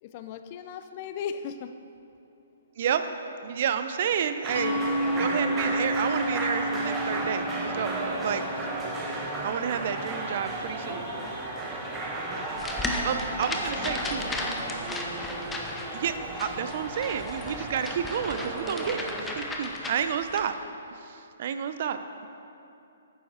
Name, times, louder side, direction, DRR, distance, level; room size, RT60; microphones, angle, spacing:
voice 1, 0.0-1.8 13.5-14.4, left 7 dB, 40° left, 10 dB, 0.4 m, -38 dB
voice 2, 2.8-3.1 3.4-8.4 9.4-11.1 12.8-14.3 15.9-20.5 21.0-22.3, right 8 dB, 50° right, 9 dB, 0.5 m, -30 dB
sound 1, 4.4-19.3, right 2 dB, 15° right, 1.2 m, -34 dB
Mallet percussion, 4.6-9.9, right 1 dB, 70° left, 0.9 m, -31 dB
sound 2, 12.6-20.5, left 2 dB, 10° left, 0.8 m, -35 dB
9.1 x 7.2 x 4.3 m, 2.7 s
hypercardioid pair, 135°, 0 cm